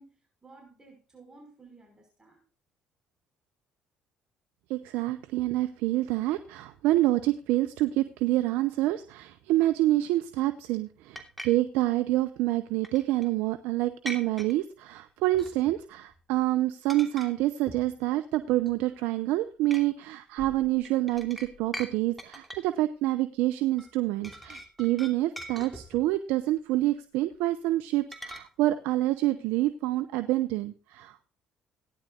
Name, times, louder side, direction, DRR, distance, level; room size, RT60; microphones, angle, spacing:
voice 1, 0.0-2.4, right 3 dB, 20° right, 1 dB, 5.5 m, -54 dB
voice 2, 4.7-31.3, right 16 dB, 75° right, 10 dB, 0.7 m, -27 dB
sound 1, 11.2-11.5 12.8-13.3 14.1-14.5 15.3-15.8 16.1-16.4 16.9-17.3 17.7-17.9 18.5-19.0 19.7-19.8 20.4-21.9 22.2-22.7 23.8-23.9 24.2-26.1 28.1-28.4, equal, 5° left, 2.7 m, -41 dB
17.5 x 10.5 x 2.5 m, 0.34 s
hypercardioid pair, 55°, 3 cm